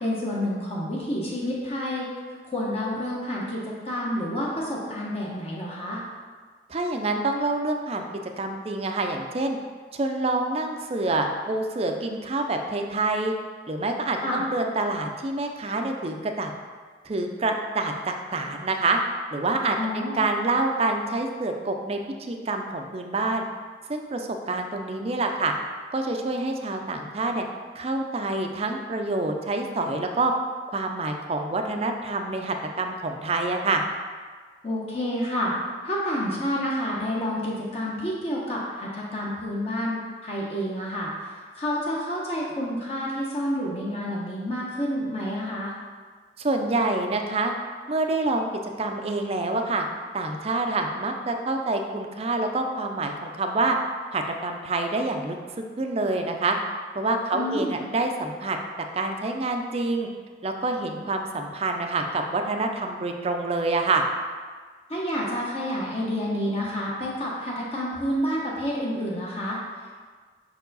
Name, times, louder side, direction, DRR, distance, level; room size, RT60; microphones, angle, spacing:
voice 1, 0.0-2.1 2.5-6.0 14.2-14.4 19.8-20.2 34.6-35.5 35.8-45.7 57.3-57.8 64.9-69.6, equal, 35° left, -5 dB, 0.9 m, -29 dB
voice 2, 6.7-8.1 8.4-9.6 9.9-13.3 13.7-16.5 17.0-19.0 19.3-23.5 23.9-25.5 25.9-27.5 27.8-30.3 30.7-33.8 46.4-47.5 47.9-48.5 48.8-49.9 50.1-53.8 54.1-56.6 56.9-58.6 58.9-60.1 60.4-64.0, right 2 dB, 35° right, 4 dB, 0.5 m, -27 dB
5.5 x 4.6 x 4.0 m, 1.5 s
head